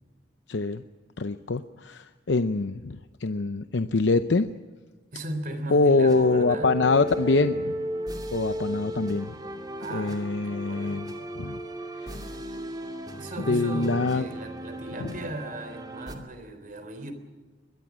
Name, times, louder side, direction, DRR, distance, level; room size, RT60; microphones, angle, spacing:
voice 1, 0.5-0.8 1.2-4.5 5.7-7.8 8.3-9.4 9.9-11.6 12.0-12.2 13.5-14.3 15.0-15.1, left 3 dB, 85° left, 10 dB, 0.7 m, -24 dB
voice 2, 5.1-6.8 9.8-11.1 13.2-17.1, right 1 dB, 50° right, 9 dB, 3.6 m, -37 dB
sound 1, 6.1-16.1, equal, 25° right, 2.6 m, -35 dB
22.5 x 21.5 x 6.2 m, 1.4 s
head